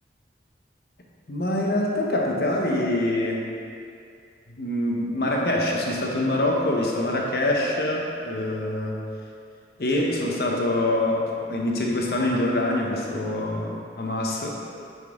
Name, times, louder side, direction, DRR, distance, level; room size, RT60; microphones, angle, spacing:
voice 1, 1.3-3.5 4.5-9.0 9.8-14.6, left 1 dB, 65° left, -1 dB, 0.8 m, -25 dB
6.1 x 5.4 x 3.6 m, 2.4 s
head